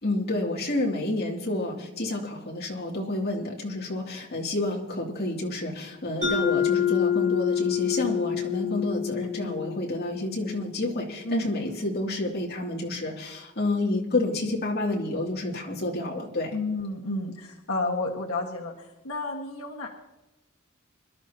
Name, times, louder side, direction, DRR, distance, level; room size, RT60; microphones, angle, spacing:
voice 1, 0.0-16.6, left 2 dB, 50° left, -2 dB, 2.8 m, -29 dB
Mallet percussion, 6.2-10.8, left 9 dB, 35° right, 5.7 m, -27 dB
voice 2, 16.5-19.9, left 2 dB, 85° left, 0 dB, 1.7 m, -31 dB
25.5 x 12.5 x 2.9 m, 0.99 s
head